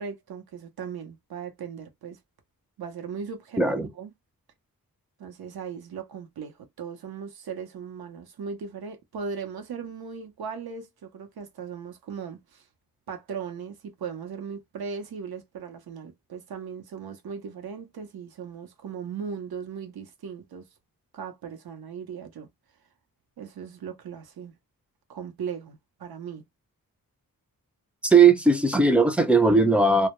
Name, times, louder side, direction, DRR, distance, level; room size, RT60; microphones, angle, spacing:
voice 1, 0.0-2.2 2.8-4.1 5.2-12.6 13.1-20.6 21.1-22.5 23.4-24.5 25.1-26.4, right 6 dB, 85° right, 0.7 m, -38 dB
voice 2, 3.6-3.9 28.0-30.1, right 4 dB, 5° right, 0.4 m, -18 dB
2.1 x 2.1 x 2.9 m
wide cardioid pair, 100°, 36 cm